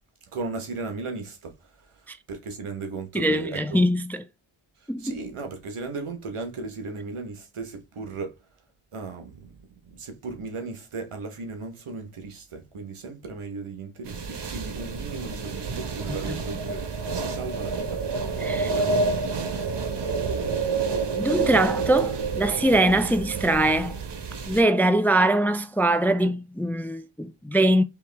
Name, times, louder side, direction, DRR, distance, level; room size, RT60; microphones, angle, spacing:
voice 1, 0.3-3.8 5.0-8.4 8.9-9.6 10.0-18.0 18.6-19.3, right 3 dB, 85° right, 1.2 m, -36 dB
voice 2, 3.1-4.2 4.9-5.2 16.3-16.4 18.4-18.7 21.2-24.0 24.5-27.8, right 1 dB, 5° left, 0.3 m, -22 dB
sound 1, 14.1-24.6, right 4 dB, 55° right, 0.9 m, -28 dB
4.5 x 3.0 x 3.3 m
cardioid pair, 45°, 49 cm